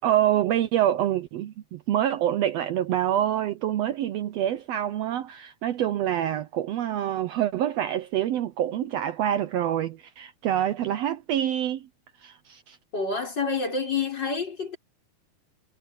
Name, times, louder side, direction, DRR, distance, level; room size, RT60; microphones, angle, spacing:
voice 1, 0.0-11.9 12.2-12.8, right 11 dB, 85° right, 1.4 m, -26 dB
voice 2, 12.9-14.8, left 4 dB, 30° left, 6.1 m, -28 dB
omnidirectional pair, 3.9 m